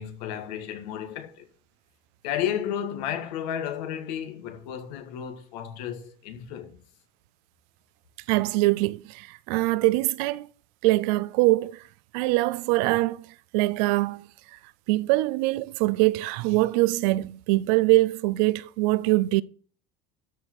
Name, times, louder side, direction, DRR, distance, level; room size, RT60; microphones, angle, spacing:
voice 1, 0.0-1.5 2.2-6.8, left 9 dB, 90° left, 1.8 m, -33 dB
voice 2, 8.3-10.5 10.8-11.8 12.1-13.3 13.5-14.3 14.9-19.4, right 20 dB, 75° right, 0.5 m, -23 dB
13.0 x 4.9 x 4.3 m
cardioid pair, 165°, 21 cm